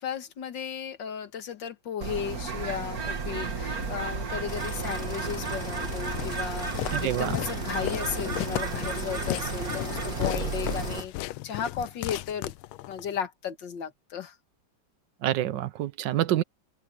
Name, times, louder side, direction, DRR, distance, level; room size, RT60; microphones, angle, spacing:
voice 1, 0.0-12.5 12.9-14.4, left 8 dB, 65° left, 2.1 m, -35 dB
Bird, 2.0-11.0, right 4 dB, 45° right, 2.3 m, -33 dB
sound 1, 4.5-11.0, left 2 dB, 30° left, 4.5 m, -40 dB
Walk footsteps, 6.1-13.1, left 16 dB, 85° left, 1.4 m, -35 dB
voice 2, 6.9-7.4 15.2-16.4, right 13 dB, 65° right, 1.4 m, -27 dB
omnidirectional pair, 2.2 m